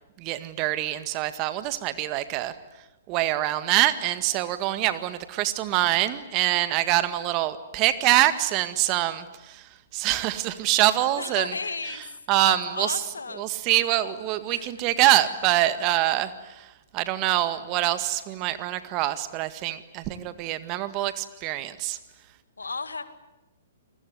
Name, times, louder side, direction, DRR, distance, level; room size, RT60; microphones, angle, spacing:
voice 1, 0.2-2.5 3.1-11.5 12.3-13.0 13.4-16.7 16.9-22.0, right 15 dB, 35° right, 12 dB, 1.9 m, -25 dB
voice 2, 11.0-12.1 12.4-13.5 14.5-14.7 22.6-23.0, left 4 dB, 85° left, 11 dB, 2.2 m, -34 dB
28.5 x 20.5 x 9.7 m, 0.98 s
figure-of-eight pair, 120°, 0 cm